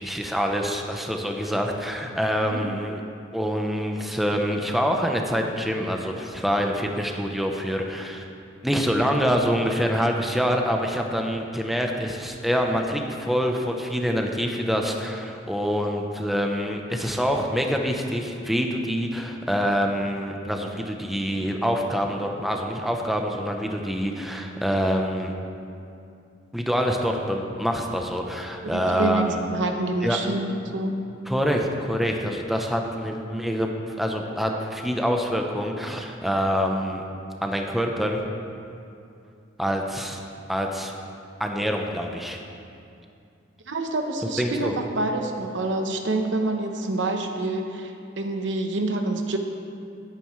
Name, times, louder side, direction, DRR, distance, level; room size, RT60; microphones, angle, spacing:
voice 1, 0.0-3.0 3.3-8.2 8.6-25.3 26.5-29.4 30.0-30.2 31.3-37.0 37.4-38.2 39.6-40.2 40.5-40.9 41.4-42.4 44.4-44.7, equal, ahead, 2 dB, 0.7 m, -26 dB
voice 2, 28.6-31.0 43.7-49.4, right 2 dB, 70° right, 4 dB, 1.0 m, -27 dB
17.5 x 9.2 x 3.2 m, 2.6 s
head